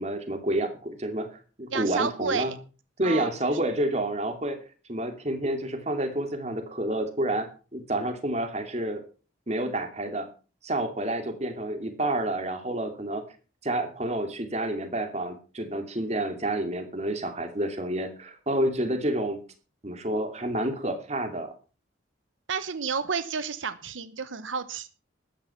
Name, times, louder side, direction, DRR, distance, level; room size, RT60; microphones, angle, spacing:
voice 1, 0.0-2.5 3.0-4.6 4.9-9.0 9.5-10.3 10.6-13.2 13.6-19.4 19.8-21.5, right 1 dB, 35° right, 7 dB, 2.6 m, -29 dB
voice 2, 1.7-2.5 3.0-3.6 22.5-24.9, right 5 dB, 85° right, 13 dB, 1.0 m, -31 dB
13.5 x 10.5 x 5.8 m, 0.36 s
head